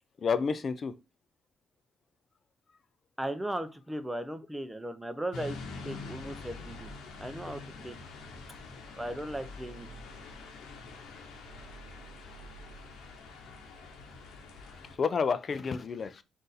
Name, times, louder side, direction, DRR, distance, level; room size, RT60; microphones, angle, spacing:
voice 1, 0.2-0.9 14.9-16.2, left 5 dB, 45° left, 0.4 m, -30 dB
voice 2, 3.2-6.9 7.2-8.0 9.0-9.9, right 1 dB, 5° right, 0.6 m, -37 dB
sound 1, 5.3-15.0, left 3 dB, 85° left, 0.9 m, -45 dB
3.9 x 2.6 x 4.0 m
cardioid pair, 90°, 0 cm